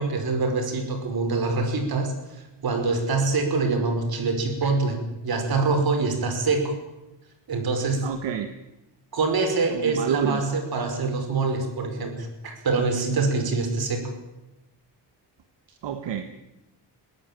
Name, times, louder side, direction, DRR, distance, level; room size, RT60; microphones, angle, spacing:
voice 1, 0.0-2.1 2.6-6.7 7.5-8.1 9.1-14.1, right 3 dB, 55° right, 6 dB, 5.3 m, -25 dB
voice 2, 8.0-8.5 9.7-10.4 15.8-16.4, right 8 dB, 80° right, 8 dB, 1.6 m, -28 dB
21.5 x 16.5 x 9.0 m, 0.97 s
wide cardioid pair, 150°, 43 cm